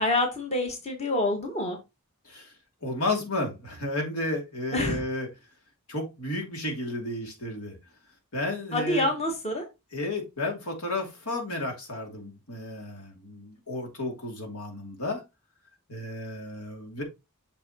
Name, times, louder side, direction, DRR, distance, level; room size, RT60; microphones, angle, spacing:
voice 1, 0.0-1.8 4.7-5.0 8.7-9.6, left 1 dB, 30° left, 1.6 m, -27 dB
voice 2, 2.8-5.3 5.9-7.8 8.3-9.1 9.9-15.2 15.9-17.0, left 2 dB, 90° left, 2.6 m, -32 dB
6.6 x 6.1 x 2.9 m
head